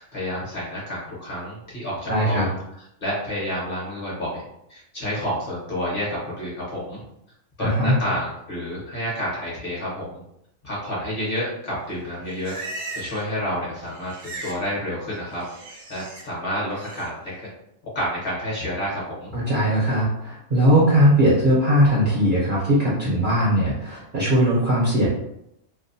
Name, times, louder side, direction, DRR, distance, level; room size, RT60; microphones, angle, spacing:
voice 1, 0.0-2.5 3.0-4.4 4.7-7.0 7.6-10.2 10.6-12.6 12.9-15.4 15.9-17.1 17.9-19.3, equal, 45° left, -6 dB, 0.9 m, -29 dB
voice 2, 2.1-2.5 7.6-8.0 19.3-25.1, equal, 50° right, -7 dB, 0.6 m, -19 dB
Livestock farm animals working animals, 11.9-13.3 13.6-14.6 14.9-16.2 16.7-17.1, right 2 dB, 70° right, 1.0 m, -38 dB
2.6 x 2.1 x 2.6 m, 0.79 s
omnidirectional pair, 1.5 m